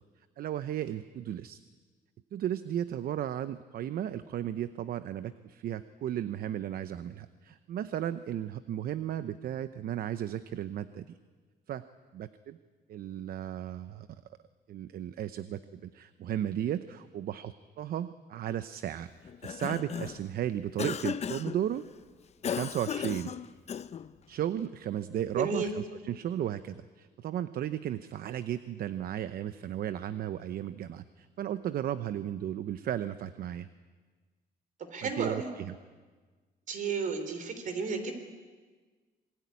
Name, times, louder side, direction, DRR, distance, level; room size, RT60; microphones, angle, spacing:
voice 1, 0.4-1.6 2.3-11.2 11.7-11.9 12.1-12.6 12.9-14.2 14.7-21.9 22.4-23.3 24.3-33.7 35.0-35.8, right 11 dB, 70° right, 12 dB, 0.8 m, -35 dB
Cough, 19.2-20.3 20.8-21.6 22.4-24.1, left 8 dB, 45° left, 0.8 m, -35 dB
voice 2, 25.4-25.7 34.9-35.5 36.7-38.1, right 5 dB, 55° right, 8 dB, 4.0 m, -32 dB
27.0 x 20.5 x 9.7 m, 1.4 s
cardioid pair, 135°, 16 cm